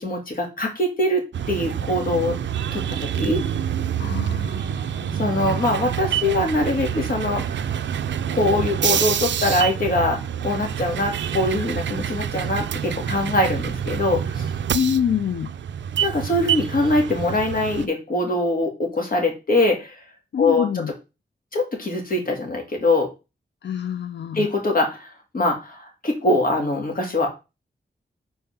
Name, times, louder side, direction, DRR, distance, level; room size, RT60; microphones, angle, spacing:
voice 1, 0.0-2.4 2.7-3.4 5.1-7.8 8.3-14.5 16.0-20.0 20.4-20.8 21.5-23.1 24.3-27.3, left 2 dB, 50° left, 2 dB, 2.3 m, -23 dB
sound 1, 1.3-17.9, right 9 dB, 90° right, 0.4 m, -27 dB
voice 2, 4.0-5.2 14.7-15.5 20.3-20.9 23.6-24.5, left 8 dB, 75° left, 10 dB, 0.5 m, -26 dB
5.5 x 4.3 x 5.8 m, 0.27 s
wide cardioid pair, 140°, 18 cm